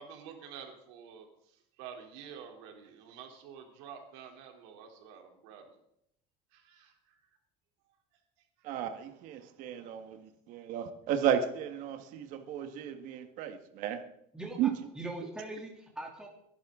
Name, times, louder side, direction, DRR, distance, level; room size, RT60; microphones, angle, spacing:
voice 1, 0.0-5.8 6.5-7.4, right 7 dB, 85° right, 3 dB, 3.2 m, -49 dB
voice 2, 8.6-10.2 10.5-14.0 14.6-14.7, right 9 dB, 65° right, 7 dB, 1.5 m, -33 dB
voice 3, 14.3-16.3, right 1 dB, 5° right, -1 dB, 2.7 m, -41 dB
22.5 x 11.0 x 3.7 m, 0.74 s
cardioid pair, 125°, 14 cm